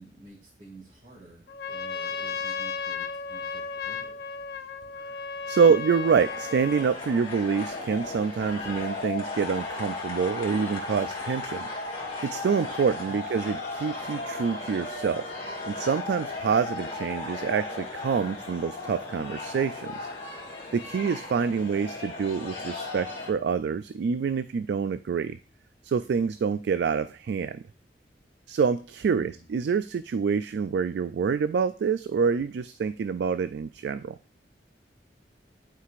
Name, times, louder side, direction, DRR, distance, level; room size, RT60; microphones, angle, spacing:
voice 1, 0.0-4.2 13.0-13.3 21.5-21.8 29.1-29.5, right 2 dB, 45° right, -7 dB, 2.2 m, -50 dB
Trumpet, 1.5-7.0, left 5 dB, 65° left, 0.6 m, -34 dB
voice 2, 5.5-11.7 12.2-15.3 15.7-20.1 20.7-25.4 25.8-27.6 28.5-34.2, right 6 dB, 75° right, 12 dB, 0.3 m, -26 dB
sound 1, 6.0-23.3, left 3 dB, 35° left, 2.3 m, -36 dB
11.5 x 4.8 x 2.5 m, 0.36 s
head